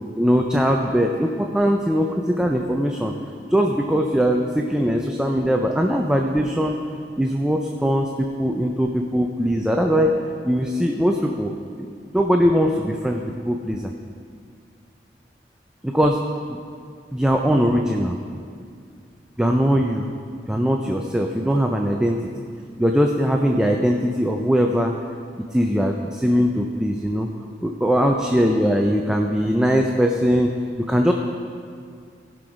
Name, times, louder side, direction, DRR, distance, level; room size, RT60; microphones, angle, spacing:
voice 1, 0.1-3.1 3.5-6.8 7.2-10.2 10.4-11.9 12.1-13.8 15.8-16.2 16.5-16.6 17.1-18.2 19.4-20.1 20.5-22.3 22.8-24.9 25.5-27.3 27.6-31.1, equal, 5° right, 2 dB, 0.4 m, -21 dB
15.5 x 6.1 x 5.0 m, 2.2 s
head